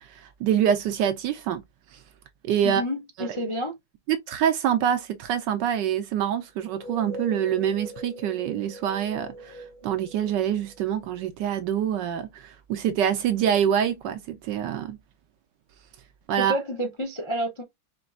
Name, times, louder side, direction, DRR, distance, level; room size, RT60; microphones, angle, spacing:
voice 1, 0.0-1.6 1.9-2.0 2.4-2.8 3.2-3.4 4.1-15.0 16.3-16.6, right 9 dB, 75° right, 1.1 m, -26 dB
voice 2, 2.6-3.7 16.5-17.6, equal, 45° left, 0.4 m, -29 dB
sound 1, 6.6-11.2, equal, 80° left, 1.8 m, -41 dB
5.1 x 3.1 x 2.4 m
omnidirectional pair, 2.2 m